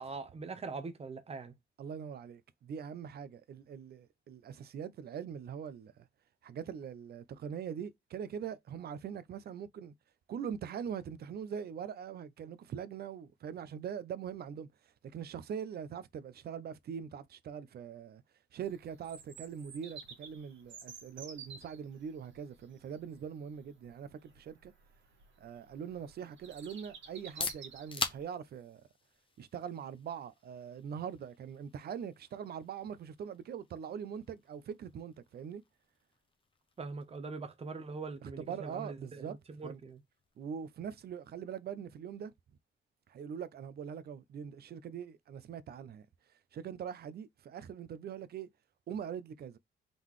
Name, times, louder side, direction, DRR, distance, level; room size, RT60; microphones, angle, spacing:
voice 1, 0.0-1.5 36.8-40.0, right 4 dB, 30° right, 0.9 m, -42 dB
voice 2, 1.8-6.1 6.4-9.9 10.3-14.7 15.1-18.2 18.5-24.7 25.4-28.8 29.4-35.6 38.2-39.4 39.6-39.8 40.4-42.3 43.1-46.1 46.5-48.5 48.9-49.6, right 8 dB, 55° right, 0.5 m, -42 dB
Bird vocalization bird call bird song, 18.6-28.2, right 5 dB, 75° right, 1.6 m, -53 dB
sound 1, 27.1-42.8, left 4 dB, 25° left, 0.7 m, -47 dB
3.8 x 3.7 x 3.1 m
cardioid pair, 135°, 20 cm